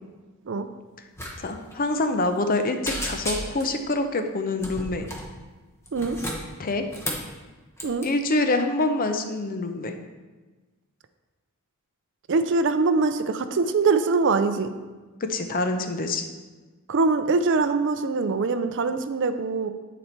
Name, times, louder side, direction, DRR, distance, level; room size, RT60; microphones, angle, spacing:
sound 1, 1.1-1.3 1.6-1.8 2.2-2.6 2.8-3.8 4.6-5.3 5.9-7.3 7.8-8.1, equal, 10° left, 1.0 m, -33 dB
voice 1, 1.4-5.1 6.6-6.8 8.0-9.9 15.2-16.3, left 2 dB, 40° left, 6 dB, 0.6 m, -26 dB
voice 2, 12.3-14.7 16.9-19.7, right 4 dB, 55° right, 10 dB, 0.5 m, -23 dB
9.9 x 4.2 x 4.5 m, 1.3 s
head